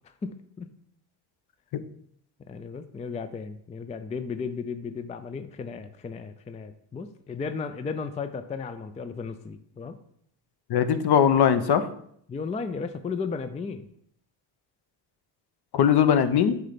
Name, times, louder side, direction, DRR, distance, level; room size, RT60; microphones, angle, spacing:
voice 1, 0.2-0.7 2.5-10.0 12.3-13.9, left 5 dB, 15° left, 10 dB, 0.4 m, -35 dB
voice 2, 10.7-11.9 15.7-16.6, left 8 dB, 55° left, 10 dB, 0.8 m, -20 dB
7.9 x 3.3 x 5.2 m, 0.68 s
supercardioid pair, 80°, 47 cm